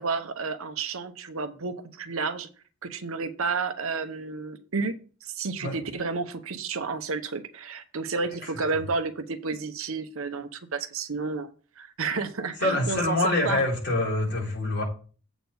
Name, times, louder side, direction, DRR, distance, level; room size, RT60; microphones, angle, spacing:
voice 1, 0.0-2.5 2.8-5.0 5.2-11.5 11.8-13.2 13.4-13.6, right 4 dB, 65° right, 10 dB, 0.9 m, -31 dB
voice 2, 12.6-14.8, left 2 dB, 55° left, -3 dB, 4.3 m, -25 dB
8.0 x 4.2 x 6.9 m, 0.38 s
head